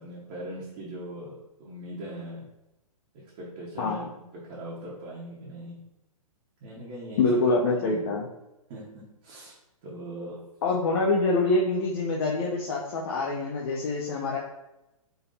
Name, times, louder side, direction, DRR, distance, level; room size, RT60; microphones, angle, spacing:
voice 1, 0.0-2.5 3.1-5.8 6.6-7.3 7.5-8.1 8.7-9.5 9.8-10.4, right 1 dB, 30° right, -6 dB, 1.0 m, -40 dB
voice 2, 7.2-8.3 10.6-14.4, left 3 dB, 40° left, -2 dB, 0.6 m, -25 dB
3.8 x 2.7 x 4.0 m, 0.92 s
figure-of-eight pair, 125°, 19 cm